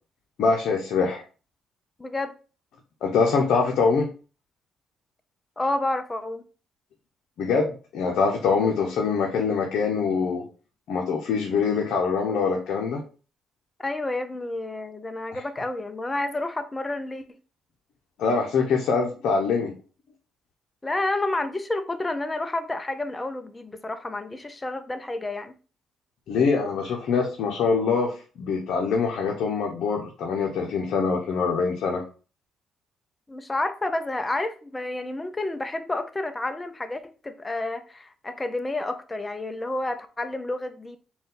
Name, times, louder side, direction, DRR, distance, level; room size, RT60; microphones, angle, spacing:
voice 1, 0.4-1.2 3.0-4.1 7.4-10.4 10.9-13.0 15.3-15.4 18.2-19.7 26.3-32.0, left 5 dB, 75° left, 0.7 m, -24 dB
voice 2, 2.0-2.3 5.6-6.4 13.8-17.2 20.8-25.6 33.3-41.0, left 2 dB, 20° left, 0.5 m, -30 dB
4.1 x 2.3 x 3.7 m
cardioid pair, 90°, 0 cm